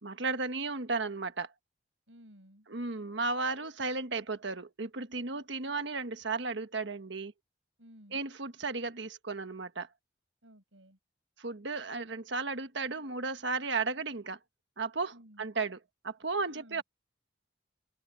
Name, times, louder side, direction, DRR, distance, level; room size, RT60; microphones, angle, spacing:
voice 1, 0.0-1.5 2.7-7.3 8.1-9.9 11.4-14.4 14.8-15.8 16.0-16.8, right 3 dB, 70° right, 1.4 m, -34 dB
voice 2, 2.1-2.7 7.8-8.2 10.4-11.0 15.1-15.4 16.5-16.8, equal, 90° right, 6.1 m, -55 dB
head